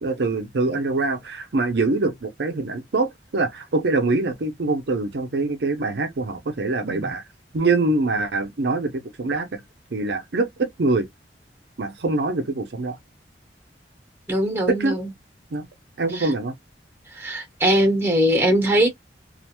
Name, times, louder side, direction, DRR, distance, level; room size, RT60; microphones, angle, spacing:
voice 1, 0.0-7.2 7.5-9.6 9.9-11.1 11.8-13.0 14.7-15.0 15.5-15.7 16.0-16.5, right 3 dB, 70° right, 0.5 m, -24 dB
voice 2, 14.3-15.1 17.2-18.9, equal, 15° right, 1.0 m, -20 dB
2.4 x 2.2 x 2.9 m
head